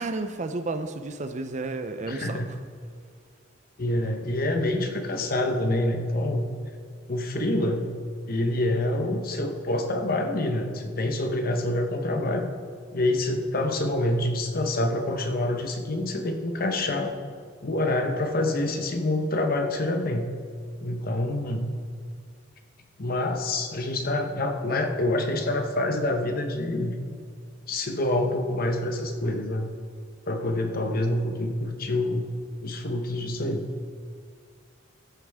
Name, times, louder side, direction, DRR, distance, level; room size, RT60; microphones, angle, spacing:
voice 1, 0.0-2.6, right 3 dB, 40° right, 9 dB, 0.5 m, -32 dB
voice 2, 2.1-2.5 3.8-6.5 7.1-7.9 8.3-12.5 12.9-17.1 17.6-20.3 20.8-21.6 23.0-27.0 27.7-29.7 30.3-32.3 32.6-33.6, left 1 dB, 50° left, 5 dB, 1.0 m, -26 dB
14.0 x 9.8 x 3.6 m, 2.1 s
head